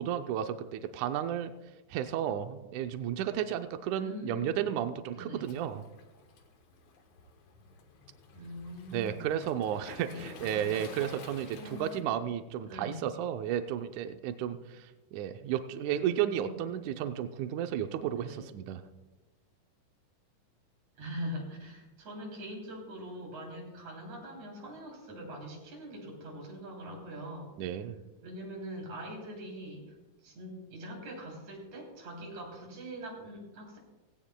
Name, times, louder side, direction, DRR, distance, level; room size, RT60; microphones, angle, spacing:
voice 1, 0.0-1.5 1.9-5.8 8.9-18.8 27.6-28.0, right 10 dB, 85° right, 8 dB, 1.7 m, -33 dB
voice 2, 3.9-4.7 5.1-5.6 8.3-9.3 10.0-10.8 11.6-12.4 12.7-13.1 16.0-16.6 18.2-18.5 21.0-27.5 28.2-30.0 30.2-33.8, equal, 50° right, -1 dB, 4.2 m, -43 dB
Waves surf, 5.4-12.0, left 5 dB, 60° left, 2.0 m, -51 dB
17.0 x 17.0 x 2.2 m, 1.1 s
omnidirectional pair, 4.2 m